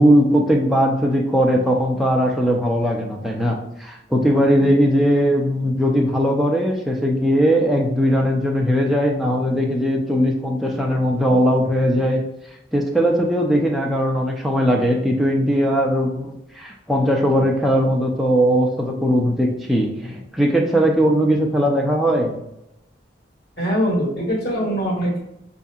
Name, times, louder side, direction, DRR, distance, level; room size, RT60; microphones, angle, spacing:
voice 1, 0.0-12.2 12.7-22.4, equal, ahead, -1 dB, 0.4 m, -19 dB
voice 2, 23.6-25.2, equal, 55° left, -4 dB, 1.5 m, -22 dB
5.2 x 2.7 x 2.4 m, 0.84 s
head